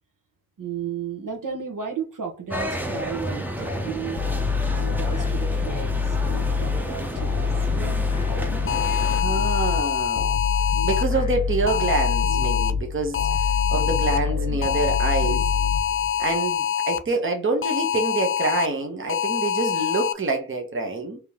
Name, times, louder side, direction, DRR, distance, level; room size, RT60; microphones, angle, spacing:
voice 1, 0.6-4.3 4.9-6.2 6.6-7.5, right 7 dB, 65° right, 1.2 m, -33 dB
sound 1, 2.5-9.2, right 1 dB, 5° right, 0.7 m, -31 dB
sound 2, 4.2-16.4, left 5 dB, 75° left, 0.9 m, -26 dB
sound 3, 8.7-11.0 11.7-12.7 13.1-14.2 14.6-17.0 17.6-18.7 19.1-20.1, left 9 dB, 40° left, 0.4 m, -25 dB
voice 2, 9.1-10.3 10.8-15.5 16.2-21.2, right 3 dB, 35° right, 1.0 m, -26 dB
3.7 x 3.0 x 3.6 m
wide cardioid pair, 115°, 34 cm